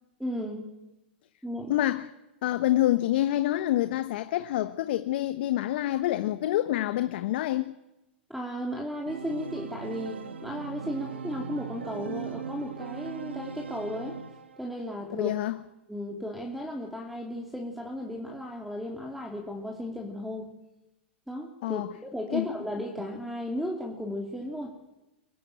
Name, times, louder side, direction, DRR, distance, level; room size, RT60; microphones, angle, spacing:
voice 1, 0.2-0.7 1.4-1.7 8.3-14.2 14.6-15.3 15.9-20.5 21.3-21.8 22.1-24.7, equal, ahead, 3.1 m, -35 dB
voice 2, 1.7-2.1 2.4-7.7 15.1-15.6 21.6-21.9 22.3-22.5, left 14 dB, 65° left, 1.0 m, -27 dB
Organ, 9.1-14.8, right 6 dB, 85° right, 1.4 m, -39 dB
23.5 x 16.5 x 9.2 m
hypercardioid pair, 105°, 6 cm